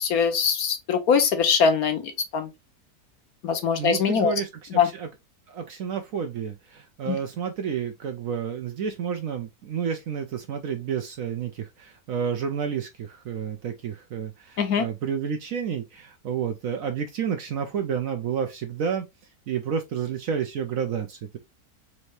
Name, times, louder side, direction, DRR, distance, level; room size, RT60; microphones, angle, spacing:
voice 1, 0.0-2.5 3.4-4.3 4.7-4.9 7.1-7.2 14.6-14.9, left 6 dB, 65° left, 1.2 m, -22 dB
voice 2, 3.7-5.1 5.5-19.1 19.5-21.4, right 7 dB, 65° right, 0.9 m, -30 dB
4.4 x 2.7 x 3.1 m
omnidirectional pair, 1.8 m